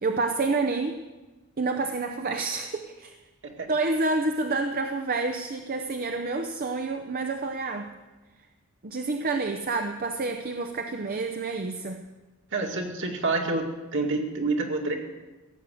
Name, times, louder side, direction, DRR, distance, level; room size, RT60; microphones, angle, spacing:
voice 1, 0.0-1.0 1.6-3.1 3.7-7.9 8.8-12.0, right 3 dB, 45° right, 6 dB, 0.7 m, -28 dB
voice 2, 12.5-13.7 13.9-14.9, right 3 dB, 60° right, 2 dB, 2.2 m, -27 dB
17.0 x 7.8 x 7.7 m, 1.2 s
head